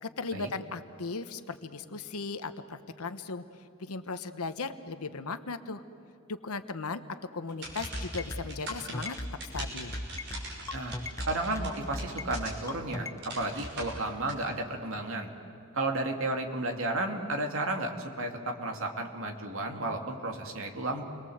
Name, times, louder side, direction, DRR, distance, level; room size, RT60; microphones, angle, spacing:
voice 1, 0.0-3.4 3.8-5.8 6.3-7.0 7.3-9.2 9.5-10.0, left 4 dB, 85° left, 10 dB, 1.1 m, -37 dB
sound 1, 7.5-12.8 13.2-14.3, right 1 dB, 50° right, 6.1 m, -41 dB
sound 2, 7.9-13.2, left 1 dB, 15° left, 0.6 m, -36 dB
voice 2, 11.3-13.1 13.3-15.3 15.7-21.0, right 2 dB, 65° right, 3 dB, 2.5 m, -33 dB
29.5 x 22.5 x 7.9 m, 2.6 s
head